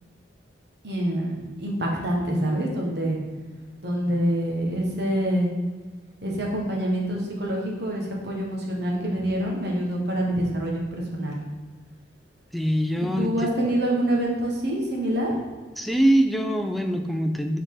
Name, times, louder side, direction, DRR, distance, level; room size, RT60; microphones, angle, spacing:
voice 1, 0.8-3.2 3.8-5.5 6.2-11.4 13.0-15.3, right 1 dB, 60° right, -1 dB, 1.3 m, -26 dB
voice 2, 12.5-13.5 15.8-17.6, right 1 dB, ahead, 4 dB, 0.4 m, -23 dB
7.1 x 4.1 x 3.7 m, 1.3 s
head